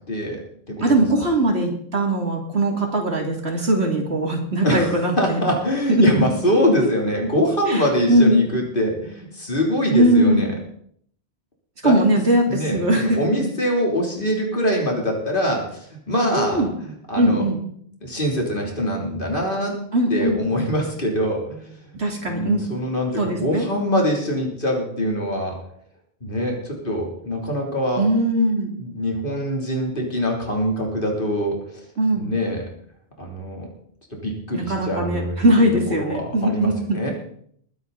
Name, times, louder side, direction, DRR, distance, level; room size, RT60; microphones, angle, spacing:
voice 1, 0.1-0.4 0.7-1.0 4.6-10.5 11.8-12.0 12.5-17.4 18.0-19.8 20.1-21.8 22.3-25.6 26.2-28.1 28.8-31.6 32.1-32.7 33.2-33.7 34.1-35.4 35.9-37.1, equal, 55° left, 0 dB, 3.5 m, -24 dB
voice 2, 0.8-5.4 5.9-6.1 6.8-6.9 7.7-8.4 9.9-10.5 11.8-13.3 16.3-16.7 17.2-17.6 19.9-20.4 21.9-22.6 23.2-23.7 28.0-28.7 32.0-32.3 34.5-37.0, right 1 dB, 75° right, 1 dB, 3.2 m, -20 dB
21.0 x 9.5 x 4.1 m, 0.64 s
omnidirectional pair, 1.1 m